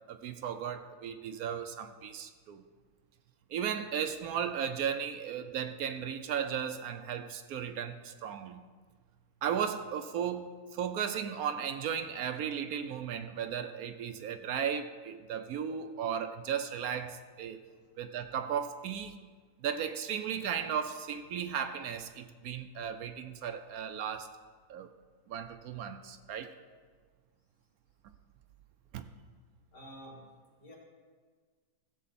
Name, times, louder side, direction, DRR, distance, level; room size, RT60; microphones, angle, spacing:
voice 1, 0.1-2.6 3.5-8.6 9.4-17.6 18.0-19.2 19.6-24.3 24.7-24.9 25.3-26.5 28.9-29.1, right 8 dB, 70° right, 9 dB, 1.0 m, -35 dB
voice 2, 29.7-30.3 30.6-30.7, equal, 90° left, -4 dB, 3.1 m, -51 dB
15.5 x 7.3 x 4.2 m, 1.5 s
omnidirectional pair, 1.7 m